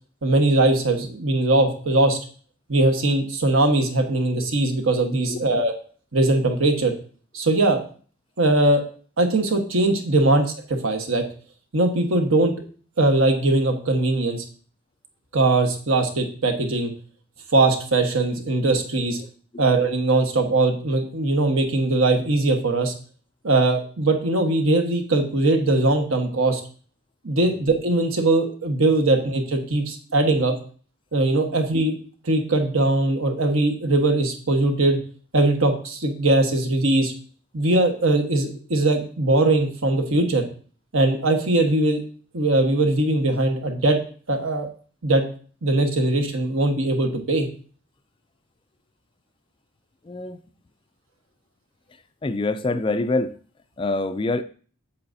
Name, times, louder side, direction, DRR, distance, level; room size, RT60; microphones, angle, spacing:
voice 1, 0.2-2.2 2.7-5.7 6.1-6.9 7.3-7.8 8.4-8.8 9.2-11.2 11.7-12.5 13.0-14.4 15.3-16.9 17.5-19.2 19.6-22.9 23.4-26.6 27.2-30.5 31.1-31.9 32.2-35.0 35.3-37.1 37.5-40.5 40.9-42.0 42.3-44.0 44.3-44.7 45.0-45.2 45.6-47.5, right 2 dB, 70° right, 1.3 m, -20 dB
voice 2, 50.1-50.4 52.2-53.4 53.8-54.4, left 2 dB, 25° left, 0.3 m, -25 dB
8.6 x 7.3 x 2.7 m
head